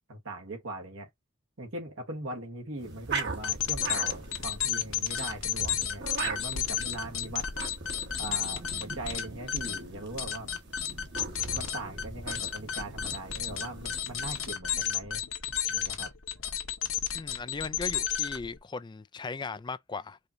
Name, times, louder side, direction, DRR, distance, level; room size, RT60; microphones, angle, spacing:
voice 1, 0.1-1.1 1.6-7.5 8.2-10.5 11.5-15.2 15.7-16.1, right 2 dB, 75° right, 1.4 m, -40 dB
sound 1, 2.8-14.5, right 4 dB, 55° right, 1.2 m, -41 dB
sound 2, 3.1-18.6, left 9 dB, 70° left, 1.1 m, -33 dB
voice 2, 17.1-20.2, left 4 dB, 20° left, 0.3 m, -37 dB
4.9 x 2.8 x 2.6 m
head